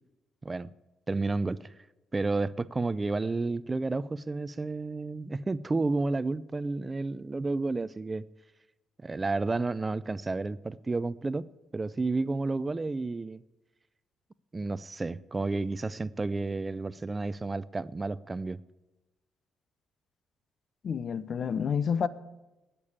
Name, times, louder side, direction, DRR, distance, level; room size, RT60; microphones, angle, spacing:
voice 1, 1.1-1.7 2.1-8.3 9.0-13.4 14.5-18.6, right 3 dB, 25° right, 0.4 m, -31 dB
voice 2, 20.8-22.1, left 7 dB, 55° left, 0.7 m, -29 dB
17.5 x 6.8 x 8.5 m
cardioid pair, 90°, 0 cm